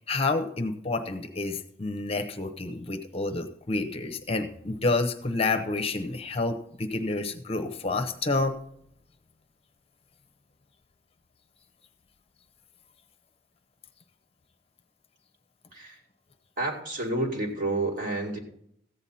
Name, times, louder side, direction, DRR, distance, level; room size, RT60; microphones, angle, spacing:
voice 1, 0.1-8.6, left 3 dB, 35° left, 6 dB, 0.8 m, -29 dB
voice 2, 16.6-18.4, right 2 dB, 50° right, 0 dB, 2.4 m, -29 dB
14.5 x 8.9 x 4.2 m, 0.71 s
head